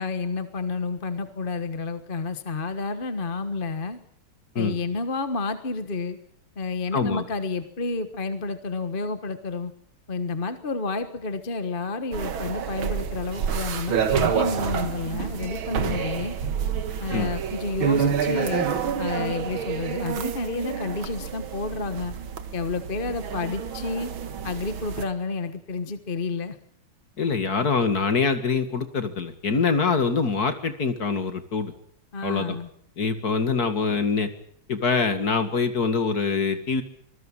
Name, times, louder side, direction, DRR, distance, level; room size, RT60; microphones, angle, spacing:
voice 1, 0.0-4.0 4.5-6.2 6.6-9.7 10.1-16.4 17.0-18.7 19.0-22.1 22.5-24.1 24.4-26.6 32.1-32.7, left 3 dB, 30° left, 10 dB, 1.3 m, -30 dB
voice 2, 6.9-7.2 17.1-17.3 27.2-31.7 32.2-32.6 33.0-34.3 34.7-36.8, left 4 dB, 45° left, 9 dB, 2.5 m, -24 dB
sound 1, 12.1-25.1, right 7 dB, 75° right, 2.3 m, -28 dB
25.5 x 20.5 x 7.4 m, 0.64 s
omnidirectional pair, 2.3 m